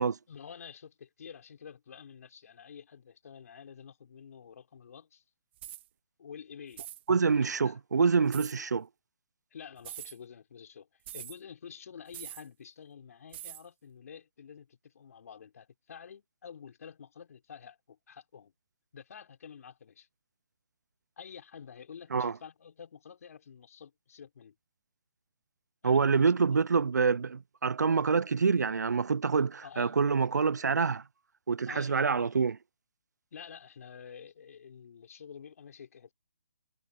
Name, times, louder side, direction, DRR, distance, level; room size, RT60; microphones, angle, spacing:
voice 1, 0.3-5.2 6.2-6.8 7.4-7.8 9.5-18.5 18.9-20.1 21.2-24.6 25.8-26.6 29.6-30.0 31.6-32.3 33.3-36.1, left 7 dB, 55° left, 4.2 m, -49 dB
sound 1, 5.6-5.9 6.7-7.0 8.3-8.6 9.8-10.2 11.1-11.4 12.1-12.5 13.3-13.6, right 13 dB, 35° right, 1.5 m, -43 dB
voice 2, 7.1-8.9 22.1-22.3 25.8-31.0 31.5-32.6, right 5 dB, 75° right, 0.6 m, -26 dB
figure-of-eight pair, 140°, 9 cm